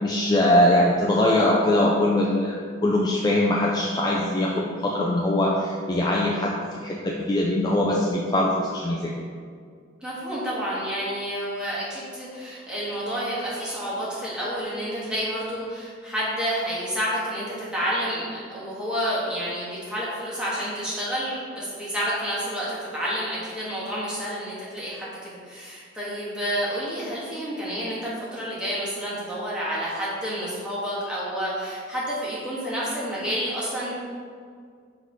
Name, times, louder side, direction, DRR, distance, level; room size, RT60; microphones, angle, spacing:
voice 1, 0.0-9.1, left 1 dB, 20° left, -3 dB, 0.4 m, -22 dB
voice 2, 10.0-33.9, equal, 5° right, -9 dB, 1.6 m, -29 dB
6.1 x 3.2 x 5.3 m, 2.1 s
head